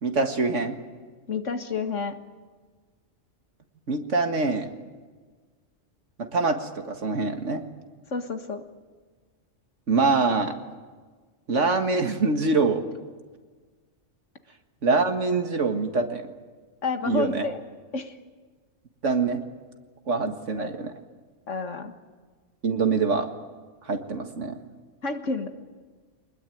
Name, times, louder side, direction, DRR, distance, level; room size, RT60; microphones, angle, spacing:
voice 1, 0.0-0.8 3.9-4.7 6.3-7.6 9.9-10.5 11.5-12.8 14.8-16.3 17.0-17.5 19.0-19.4 20.1-20.9 22.6-23.3 23.9-24.6, right 4 dB, 80° right, 5 dB, 2.1 m, -24 dB
voice 2, 1.3-2.2 8.1-8.6 16.8-17.6 17.9-18.1 20.6-20.7 21.5-21.9 25.0-25.5, left 4 dB, 90° left, 6 dB, 2.0 m, -29 dB
24.0 x 20.5 x 9.2 m, 1.4 s
omnidirectional pair, 1.3 m